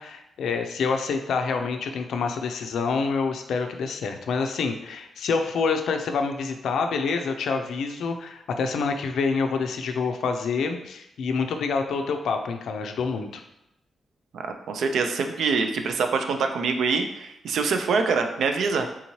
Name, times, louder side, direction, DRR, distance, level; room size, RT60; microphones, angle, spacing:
voice 1, 0.0-13.4, left 5 dB, 80° left, 5 dB, 0.4 m, -27 dB
voice 2, 14.3-18.9, right 4 dB, 70° right, 6 dB, 0.3 m, -25 dB
3.6 x 2.7 x 3.0 m, 0.83 s
wide cardioid pair, 180°, 0 cm